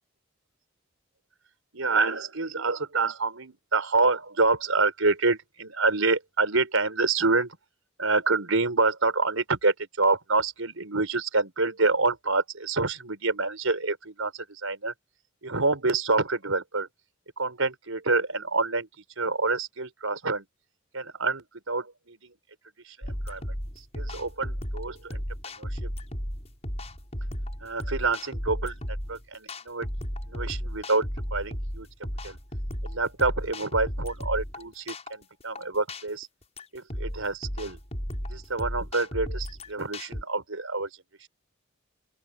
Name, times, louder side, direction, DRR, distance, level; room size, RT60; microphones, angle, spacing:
voice 1, 1.7-7.6 8.0-14.9 15.4-16.9 17.4-18.9 19.2-20.4 20.9-22.3 22.8-25.2 25.6-25.9 27.6-29.9 30.3-31.9 32.2-32.4 32.8-36.3 36.7-37.8 38.3-40.9 41.2-41.3, right 3 dB, 75° right, 4.6 m, -27 dB
sound 1, 23.0-40.2, equal, 30° left, 7.0 m, -34 dB
open air
head